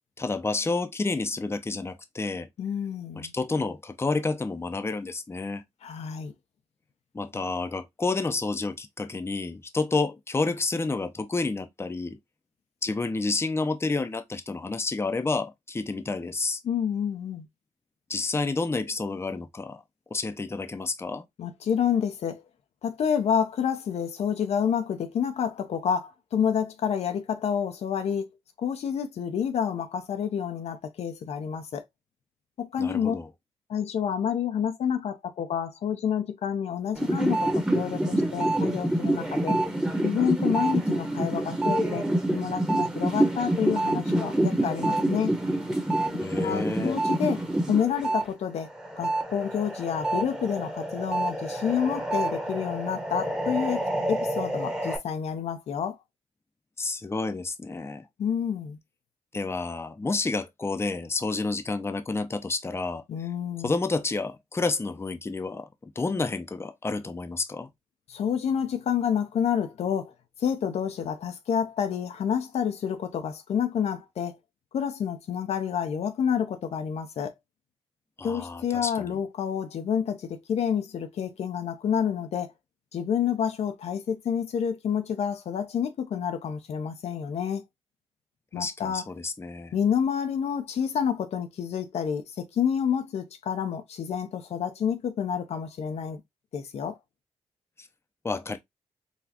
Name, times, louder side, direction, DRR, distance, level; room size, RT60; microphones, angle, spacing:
voice 1, 0.2-2.5 3.2-5.6 7.1-12.2 12.8-16.6 18.1-19.8 20.1-21.2 32.8-33.3 46.2-47.0 56.8-58.1 59.3-63.0 63.6-65.7 66.0-67.7 78.2-79.2 88.6-89.7 97.8-97.9 98.2-98.6, left 3 dB, 20° left, 0.6 m, -30 dB
voice 2, 2.6-3.3 5.8-6.3 16.6-17.5 21.4-22.4 22.8-28.3 28.6-31.8 32.6-33.2 33.7-39.6 40.0-45.3 46.4-47.4 47.7-48.7 49.0-56.0 58.2-58.8 63.1-63.7 68.1-70.1 70.4-74.4 74.7-77.3 78.2-82.5 82.9-87.6 88.5-89.0 89.7-96.2 96.5-97.0, left 8 dB, 70° left, 0.6 m, -29 dB
sound 1, 36.9-48.2 48.6-55.0, right 1 dB, 5° right, 1.1 m, -27 dB
4.0 x 2.3 x 2.8 m
supercardioid pair, 55°, 11 cm